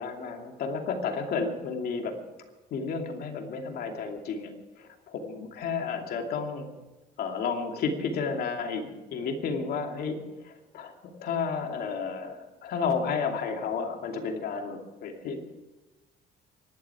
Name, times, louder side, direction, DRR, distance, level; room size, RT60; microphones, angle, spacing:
voice 1, 0.0-2.1 2.7-6.7 7.2-10.2 10.4-10.9 11.2-15.4, left 5 dB, 65° left, 3 dB, 2.6 m, -32 dB
25.0 x 11.5 x 4.9 m, 1.1 s
cardioid pair, 110°, 17 cm